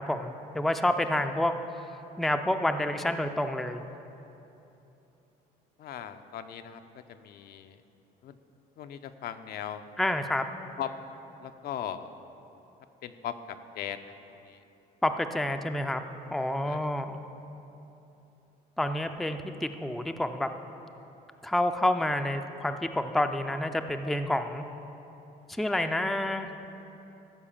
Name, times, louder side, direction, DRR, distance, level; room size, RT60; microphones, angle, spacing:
voice 1, 0.0-1.5 2.2-3.8 10.0-10.4 15.0-16.0 16.3-17.2 18.8-20.5 21.4-24.7 25.6-26.5, left 1 dB, ahead, 6 dB, 0.4 m, -28 dB
voice 2, 5.8-6.8 7.1-7.8 8.2-8.4 8.8-9.8 10.8-10.9 11.4-12.1 13.0-14.0 14.4-14.6 16.6-16.9, left 9 dB, 65° left, 8 dB, 0.5 m, -38 dB
14.0 x 4.7 x 7.2 m, 2.9 s
cardioid pair, 110°, 17 cm